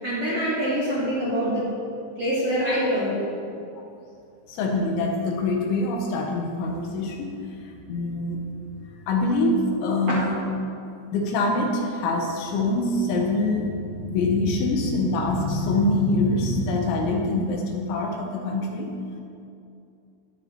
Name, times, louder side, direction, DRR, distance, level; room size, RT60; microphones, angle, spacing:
voice 1, 0.0-1.7 2.2-3.3 10.1-10.2, equal, 45° right, -8 dB, 2.1 m, -25 dB
voice 2, 4.6-7.3 7.9-8.4 9.1-10.4 11.1-18.9, left 2 dB, 75° left, 1 dB, 3.3 m, -24 dB
19.5 x 7.7 x 4.5 m, 2.5 s
omnidirectional pair, 5.8 m